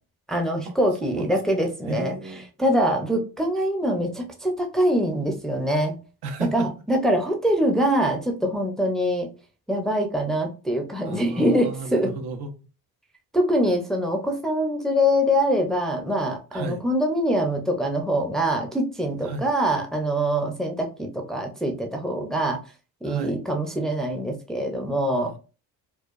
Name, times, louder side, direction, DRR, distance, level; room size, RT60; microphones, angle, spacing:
voice 1, 0.3-2.1 2.6-6.0 6.4-9.3 9.7-12.1 13.3-22.6 23.0-25.3, equal, ahead, 0.4 m, -24 dB
voice 2, 1.0-1.6 1.9-2.5 6.2-6.7 11.0-12.5 16.5-16.8 19.2-19.5 23.0-23.4 25.1-25.4, right 3 dB, 80° right, 0.9 m, -33 dB
4.5 x 2.3 x 2.4 m
cardioid pair, 150°, 38 cm